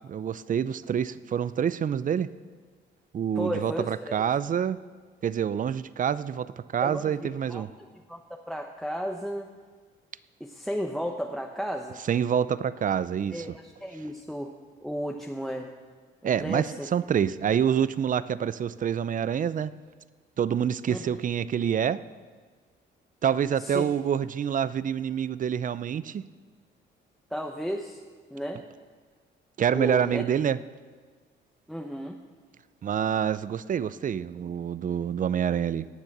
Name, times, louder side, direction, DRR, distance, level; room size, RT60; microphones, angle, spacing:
voice 1, 0.1-2.3 3.1-4.8 5.2-7.7 12.1-13.6 16.2-19.7 20.4-22.0 23.2-26.3 29.6-30.6 32.8-35.9, right 8 dB, 40° right, 17 dB, 0.5 m, -27 dB
voice 2, 3.4-4.2 6.8-7.7 8.1-8.2 8.5-9.5 10.4-12.0 13.3-14.5 14.8-15.7 16.2-16.9 20.9-21.2 23.6-23.8 27.3-28.0 28.3-28.6 29.7-30.2 31.7-32.2, equal, ahead, 2 dB, 0.8 m, -33 dB
18.0 x 7.0 x 6.0 m, 1.5 s
cardioid pair, 90°, 20 cm